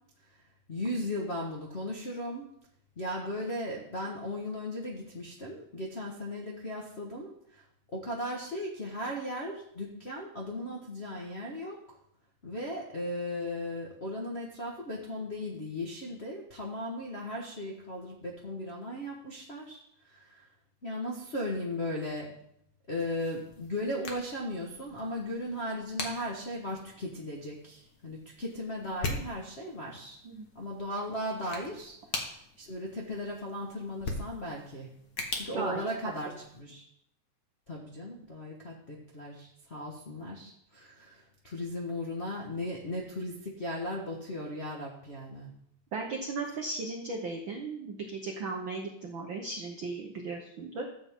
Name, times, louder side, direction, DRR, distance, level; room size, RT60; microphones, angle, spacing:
voice 1, 0.7-2.5 3.0-7.6 7.9-12.0 12.4-20.5 20.8-22.3 22.9-30.2 30.5-32.0 32.6-34.9 35.3-36.8 37.7-45.5, left 1 dB, 80° left, -4 dB, 0.5 m, -37 dB
sound 1, 22.9-36.6, left 3 dB, 55° left, 1.1 m, -42 dB
voice 2, 35.5-36.1 45.9-50.9, right 3 dB, 85° right, 2 dB, 1.0 m, -36 dB
13.5 x 7.9 x 3.6 m, 0.73 s
omnidirectional pair, 3.6 m